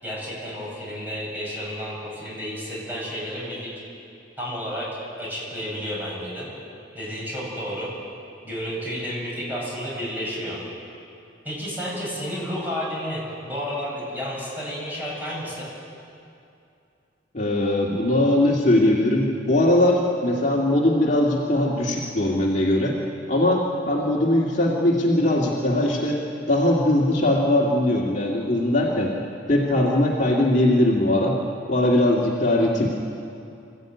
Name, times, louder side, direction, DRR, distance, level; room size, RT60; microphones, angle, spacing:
voice 1, 0.0-3.7 4.4-4.9 5.2-6.5 6.9-7.9 8.4-10.6 11.4-15.7, equal, 10° right, -5 dB, 7.7 m, -31 dB
voice 2, 17.3-23.0 23.3-26.2 26.5-29.1 29.5-31.4 31.7-32.9, left 1 dB, 40° left, -3 dB, 2.3 m, -20 dB
26.5 x 15.0 x 9.3 m, 2.6 s
head